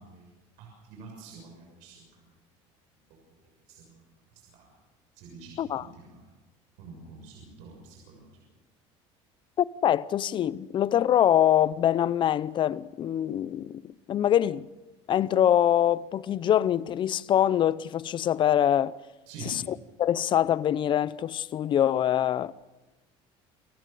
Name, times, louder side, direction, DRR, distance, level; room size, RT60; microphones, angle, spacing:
voice 1, 0.0-2.3 3.1-3.2 3.7-4.0 4.5-4.7 5.1-6.2 6.8-8.2 19.3-19.6, right 3 dB, 75° right, 6.7 m, -46 dB
voice 2, 9.6-14.7 15.1-18.9 19.4-19.6 20.0-22.5, left 10 dB, 40° left, 0.7 m, -24 dB
28.0 x 15.0 x 6.9 m
cardioid pair, 125°, 13 cm